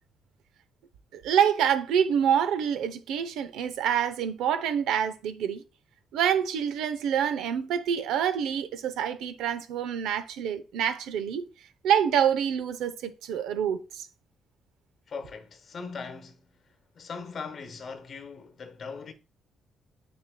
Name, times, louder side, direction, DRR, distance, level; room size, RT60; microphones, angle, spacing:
voice 1, 1.1-5.6 6.1-11.5 11.8-14.1, right 8 dB, 90° right, 0.7 m, -26 dB
voice 2, 15.1-16.5 16.9-19.1, left 5 dB, 50° left, 1.0 m, -40 dB
7.7 x 6.4 x 2.2 m
cardioid pair, 90°, 0 cm